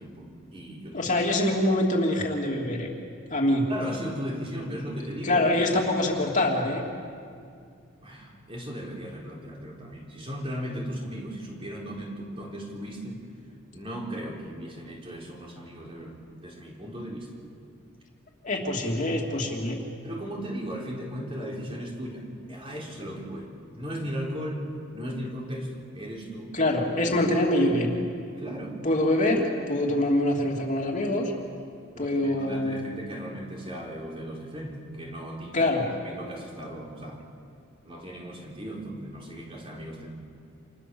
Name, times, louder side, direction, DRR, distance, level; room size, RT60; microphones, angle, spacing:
voice 1, 0.0-1.1 3.7-5.5 8.0-13.2 13.7-17.3 20.0-24.6 24.9-26.7 27.0-27.1 28.4-28.8 31.9-35.7 36.0-37.2 37.8-40.1, equal, 25° right, -2 dB, 4.5 m, -37 dB
voice 2, 0.9-2.9 3.3-3.7 5.2-6.8 18.4-19.8 26.5-28.0 28.8-31.3 32.0-32.8 35.5-35.8, left 1 dB, 35° left, 0 dB, 3.1 m, -24 dB
29.5 x 28.0 x 7.2 m, 2.3 s
head